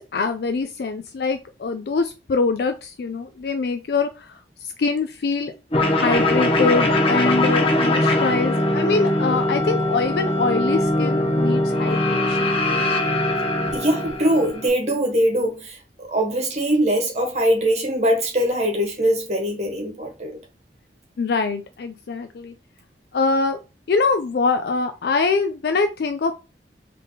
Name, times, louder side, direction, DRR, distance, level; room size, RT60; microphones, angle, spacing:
voice 1, 0.0-5.5 5.8-12.5 21.2-22.5 23.1-23.6 23.9-26.3, left 4 dB, 60° left, 0.4 m, -24 dB
sound 1, 5.7-14.7, left 1 dB, 30° left, 0.7 m, -21 dB
voice 2, 13.7-20.4, equal, 40° right, 1.2 m, -22 dB
3.6 x 2.8 x 3.7 m
head